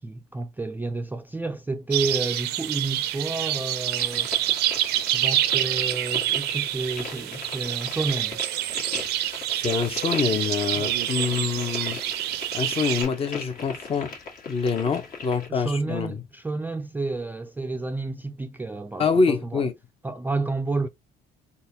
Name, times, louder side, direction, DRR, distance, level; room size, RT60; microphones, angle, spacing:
voice 1, 0.0-4.3 5.1-8.4 15.2-19.7 20.0-20.9, right 3 dB, 10° right, 0.3 m, -30 dB
sound 1, 1.9-13.0, right 13 dB, 75° right, 0.4 m, -27 dB
sound 2, 4.0-15.5, left 4 dB, 60° left, 1.5 m, -39 dB
voice 2, 9.5-12.0 12.5-14.1 14.5-16.2 19.0-19.7, left 5 dB, 35° left, 0.7 m, -25 dB
3.8 x 2.2 x 2.7 m
cardioid pair, 110°, 17 cm